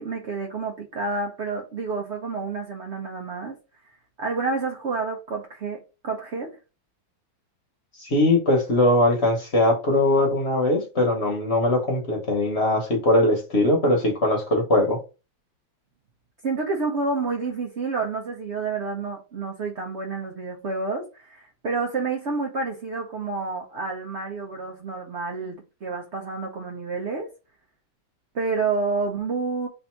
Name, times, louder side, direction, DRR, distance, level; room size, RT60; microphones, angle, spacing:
voice 1, 0.0-3.6 4.2-6.6 16.4-27.3 28.3-29.7, right 4 dB, 70° right, 0.6 m, -29 dB
voice 2, 8.0-15.0, left 1 dB, 40° left, 1.1 m, -21 dB
3.4 x 2.6 x 4.4 m
omnidirectional pair, 2.1 m